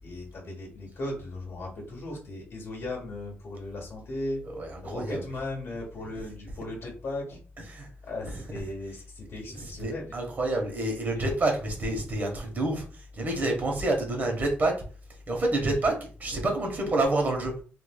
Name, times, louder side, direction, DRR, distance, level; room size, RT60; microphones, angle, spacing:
voice 1, 0.0-4.4 4.8-7.4 8.0-10.1 11.1-11.2, left 1 dB, 60° left, 0 dB, 1.2 m, -37 dB
voice 2, 4.6-5.2 7.7-7.9 9.8-12.8 13.2-14.7 15.3-17.5, right 2 dB, 35° right, 2 dB, 1.0 m, -28 dB
3.2 x 2.6 x 2.3 m, 0.39 s
cardioid pair, 105°, 5 cm